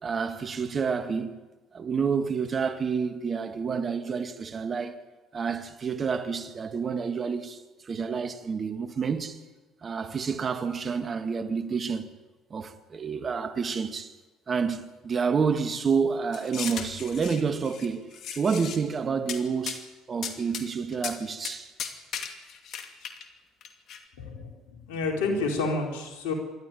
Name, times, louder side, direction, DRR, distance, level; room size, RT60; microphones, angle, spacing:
voice 1, 0.0-1.4 1.7-5.0 5.3-9.4 9.8-12.1 12.5-14.1 14.5-19.8 20.1-21.7, right 5 dB, 40° right, 1.9 m, -29 dB
sound 1, 16.3-17.9 18.1-18.8 19.3-19.4 19.7-19.8 20.2-20.6 20.9-21.2 21.4-21.5 21.8-23.3 23.6-24.0, left 7 dB, 60° left, 2.5 m, -36 dB
voice 2, 24.2-26.3, left 3 dB, 80° left, 4.2 m, -29 dB
27.0 x 12.5 x 9.3 m
hypercardioid pair, 65°, 0 cm